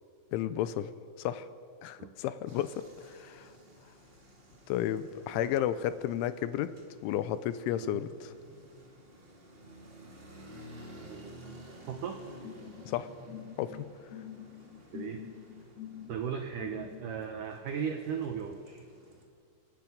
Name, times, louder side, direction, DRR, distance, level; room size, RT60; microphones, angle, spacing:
voice 1, 0.3-1.5 1.8-3.5 4.7-6.7 7.0-8.3 12.8-13.1 13.6-13.9, left 11 dB, 85° left, 14 dB, 3.2 m, -33 dB
sound 1, 2.5-19.2, equal, 40° right, 0.8 m, -53 dB
voice 2, 11.0-11.4 11.9-12.2 14.9-15.2 16.1-18.9, right 7 dB, 90° right, 5 dB, 1.8 m, -37 dB
sound 2, 12.4-17.2, left 11 dB, 60° left, 3.3 m, -47 dB
26.5 x 10.5 x 9.4 m, 2.3 s
omnidirectional pair, 5.4 m